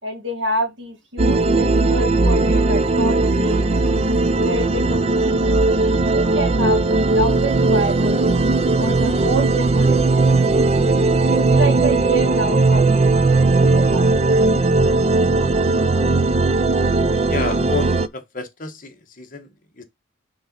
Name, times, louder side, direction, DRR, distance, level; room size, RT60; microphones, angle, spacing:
voice 1, 0.0-3.7 4.4-8.2 8.8-10.6 11.3-14.2, right 1 dB, 80° right, 2.4 m, -28 dB
sound 1, 1.2-18.1, right 3 dB, 35° right, 0.5 m, -17 dB
voice 2, 17.3-19.8, left 3 dB, 45° left, 1.4 m, -30 dB
5.7 x 3.9 x 5.2 m
head